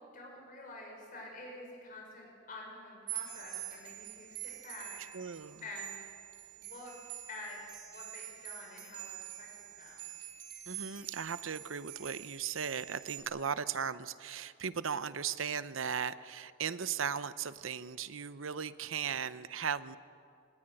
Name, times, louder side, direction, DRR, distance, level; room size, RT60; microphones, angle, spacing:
voice 1, 0.0-5.0 5.6-6.0 6.5-6.9 7.3-7.6 7.9-10.1, left 2 dB, 45° left, 0 dB, 5.8 m, -48 dB
sound 1, 3.1-13.2, right 13 dB, 60° right, 3.9 m, -46 dB
voice 2, 5.1-5.6 10.7-20.0, right 7 dB, 90° right, 14 dB, 0.8 m, -37 dB
23.5 x 20.0 x 9.0 m, 2.3 s
head